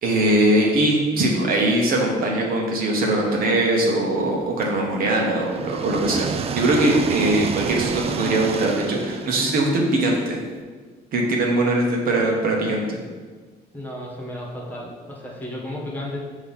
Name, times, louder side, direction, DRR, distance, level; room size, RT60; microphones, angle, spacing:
voice 1, 0.0-6.3 6.5-10.4 11.1-13.0, right 1 dB, 60° right, -1 dB, 1.2 m, -21 dB
sound 1, 4.6-10.5, right 7 dB, 35° right, 0.4 m, -30 dB
voice 2, 13.7-16.2, left 1 dB, 10° left, -4 dB, 1.5 m, -33 dB
6.2 x 3.0 x 5.6 m, 1.5 s
cardioid pair, 110°, 17 cm